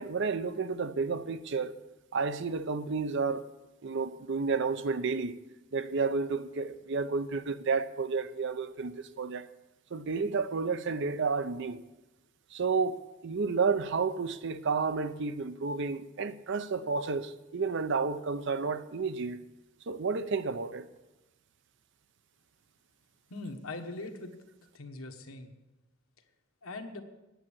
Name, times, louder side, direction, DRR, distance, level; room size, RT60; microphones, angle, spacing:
voice 1, 0.0-1.7 2.1-3.5 3.8-5.3 5.7-9.5 9.9-11.8 12.5-19.4 19.9-20.9, right 4 dB, 60° right, 0.6 m, -31 dB
voice 2, 23.3-24.3 24.7-25.5 26.6-27.0, left 2 dB, 80° left, 1.3 m, -41 dB
9.2 x 8.5 x 8.5 m
head